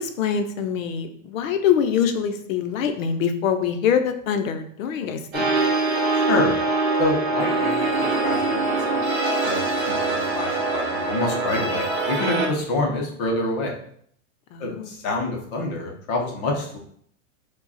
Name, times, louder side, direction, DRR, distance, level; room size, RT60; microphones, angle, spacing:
voice 1, 0.0-5.7 14.5-14.9, left 7 dB, 85° left, 8 dB, 0.8 m, -24 dB
sound 1, 5.3-12.5, right 3 dB, 25° right, 0.8 m, -23 dB
voice 2, 6.1-6.6 7.0-9.0 9.4-13.7 14.6-16.8, left 2 dB, 30° left, 0 dB, 0.7 m, -27 dB
4.7 x 2.3 x 4.1 m, 0.64 s
supercardioid pair, 175°, 39 cm